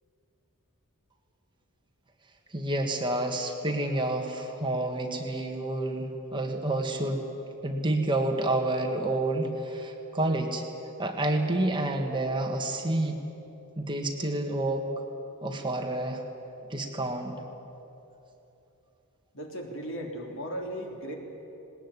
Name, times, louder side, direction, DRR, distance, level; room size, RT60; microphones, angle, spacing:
voice 1, 2.5-7.3 7.6-10.6 11.0-13.2 13.8-14.9 15.4-16.2 16.7-17.3, right 2 dB, 20° right, 3 dB, 1.7 m, -29 dB
voice 2, 19.3-21.1, equal, 60° left, 2 dB, 3.3 m, -36 dB
19.5 x 19.0 x 9.8 m, 3.0 s
head